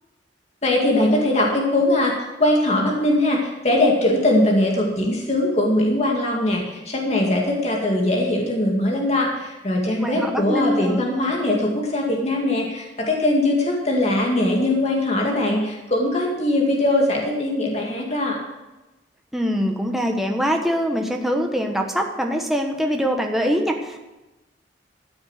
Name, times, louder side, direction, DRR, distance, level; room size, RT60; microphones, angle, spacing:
voice 1, 0.6-18.4, left 1 dB, 35° left, -1 dB, 2.2 m, -21 dB
voice 2, 10.0-11.0 19.3-24.0, equal, ahead, 2 dB, 1.2 m, -23 dB
13.5 x 7.1 x 8.0 m, 1.1 s
head